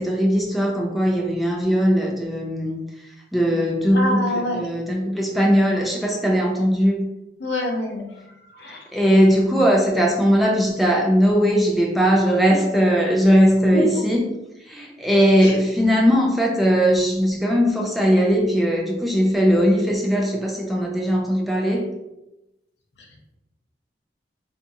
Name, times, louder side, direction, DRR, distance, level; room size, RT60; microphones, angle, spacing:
voice 1, 0.0-2.8 3.3-7.0 8.6-14.3 14.7-21.9, equal, ahead, -2 dB, 0.4 m, -19 dB
voice 2, 3.9-4.6 7.4-8.2 8.5-8.9 13.7-13.8 15.4-15.6, left 1 dB, 80° left, 0 dB, 0.8 m, -26 dB
3.6 x 2.5 x 2.7 m, 0.93 s
head